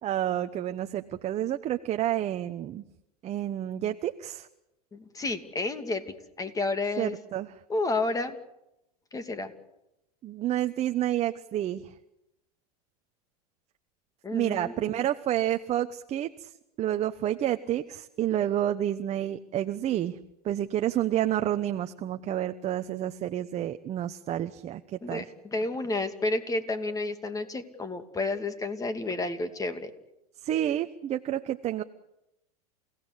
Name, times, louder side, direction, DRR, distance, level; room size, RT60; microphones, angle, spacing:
voice 1, 0.0-2.8 3.2-4.5 7.0-7.5 10.2-11.9 14.3-16.5 16.8-20.2 20.4-25.2 30.4-31.8, right 12 dB, 35° right, 8 dB, 1.0 m, -29 dB
voice 2, 4.9-6.0 6.4-7.2 7.7-8.4 9.1-9.5 14.2-15.1 25.0-29.9, left 2 dB, 20° left, 9 dB, 2.6 m, -31 dB
29.0 x 17.0 x 8.3 m, 0.88 s
hypercardioid pair, 100°, 19 cm